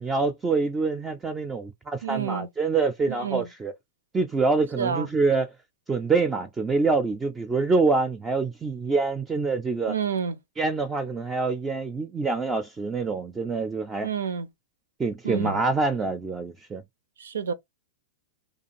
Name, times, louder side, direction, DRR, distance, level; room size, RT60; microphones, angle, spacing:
voice 1, 0.0-3.7 4.1-5.5 5.9-10.0 10.6-14.1 15.0-16.8, right 4 dB, 20° right, 0.4 m, -26 dB
voice 2, 2.0-2.5 3.1-3.5 4.8-5.1 9.9-10.4 14.0-14.5 15.2-15.6 17.2-17.5, right 6 dB, 85° right, 0.4 m, -29 dB
2.4 x 2.3 x 2.9 m
hypercardioid pair, 115°, 0 cm